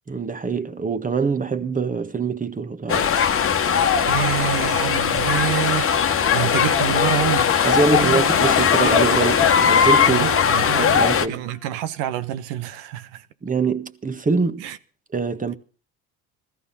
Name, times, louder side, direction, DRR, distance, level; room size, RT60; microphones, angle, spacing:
voice 1, 0.1-3.1 7.6-11.4 13.4-14.6 15.1-15.5, right 4 dB, 20° right, 1.5 m, -24 dB
sound 1, 2.9-11.3, left 7 dB, 35° left, 1.3 m, -19 dB
voice 2, 3.7-7.7 7.9-8.4 10.1-13.3 14.6-14.8, right 12 dB, 80° right, 1.2 m, -28 dB
Trumpet, 6.3-12.1, left 3 dB, 15° left, 2.1 m, -40 dB
14.5 x 14.5 x 5.6 m
supercardioid pair, 85°, 37 cm